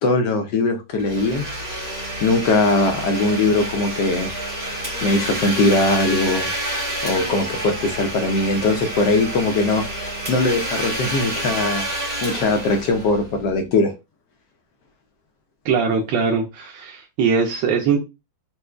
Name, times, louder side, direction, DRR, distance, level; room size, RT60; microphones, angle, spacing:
voice 1, 0.0-1.4 2.2-4.4 5.0-6.5 7.0-9.9 10.3-11.9 12.2-13.9, left 2 dB, 75° left, 4 dB, 1.0 m, -20 dB
Domestic sounds home sounds, 1.0-13.6, right 1 dB, 20° right, 1.0 m, -28 dB
voice 2, 15.6-18.0, right 5 dB, 80° right, 1 dB, 1.3 m, -21 dB
4.3 x 2.5 x 2.3 m, 0.25 s
omnidirectional pair, 2.2 m